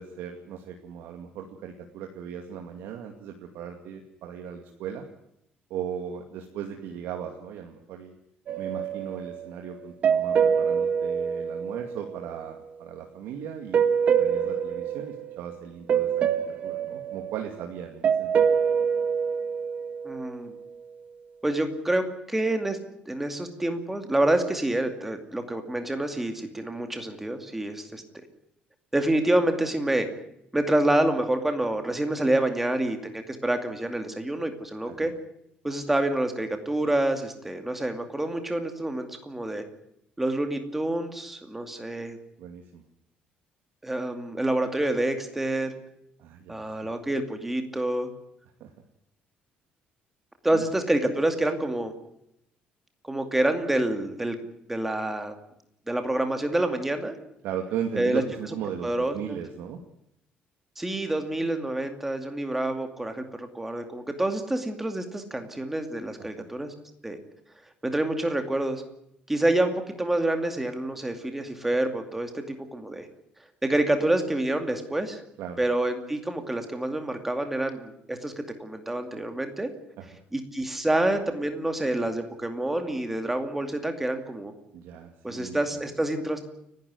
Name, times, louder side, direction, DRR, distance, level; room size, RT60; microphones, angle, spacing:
voice 1, 0.0-5.1 5.7-8.2 8.6-13.8 14.2-18.4 34.9-35.0 42.4-42.8 46.2-46.9 48.6-48.7 50.5-50.6 57.4-59.8 66.2-66.5 75.4-75.6 80.0-80.1 84.7-85.8, right 8 dB, 85° right, 3 dB, 2.3 m, -37 dB
sound 1, 8.5-12.3 13.7-15.6 15.9-20.4, right 7 dB, 40° right, 1.5 m, -26 dB
voice 2, 20.0-20.5 21.4-22.8 23.1-28.0 28.9-30.1 30.5-35.1 35.6-39.6 40.2-42.2 43.8-45.7 46.5-48.1 50.4-51.9 53.0-54.4 54.7-55.3 55.9-57.1 58.0-58.2 58.8-59.4 60.8-66.7 67.0-67.2 67.8-68.8 69.3-73.1 73.6-75.2 75.6-79.7 80.3-84.5 85.2-86.5, right 1 dB, 5° right, 6 dB, 2.4 m, -27 dB
29.5 x 12.0 x 9.6 m, 0.80 s
cardioid pair, 165°, 3 cm